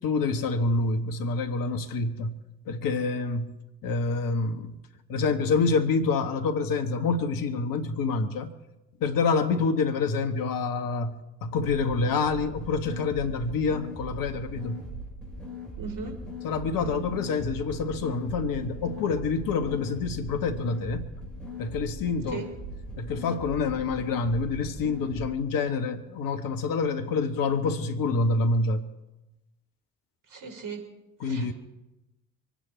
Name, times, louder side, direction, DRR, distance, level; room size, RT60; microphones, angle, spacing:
voice 1, 0.0-2.4 2.7-3.5 3.8-4.8 5.1-8.5 9.0-14.8 16.4-21.0 21.6-22.4 23.0-28.8 31.2-31.5, left 4 dB, 60° left, 1.6 m, -27 dB
sound 1, 11.6-25.3, equal, ahead, 7.2 m, -40 dB
voice 2, 15.8-16.2 16.8-17.0 22.3-22.4 30.3-30.8 31.2-31.5, right 5 dB, 55° right, 4.8 m, -38 dB
26.5 x 10.0 x 4.5 m
hypercardioid pair, 50°, 39 cm